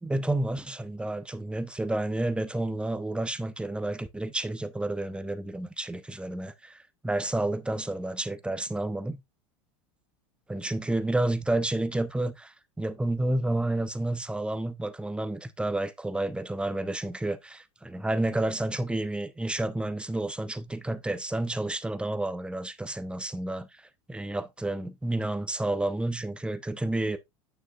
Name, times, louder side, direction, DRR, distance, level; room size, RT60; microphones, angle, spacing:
voice 1, 0.0-9.2 10.5-27.2, right 1 dB, 5° right, 0.9 m, -30 dB
9.3 x 6.3 x 2.4 m
hypercardioid pair, 100°, 16 cm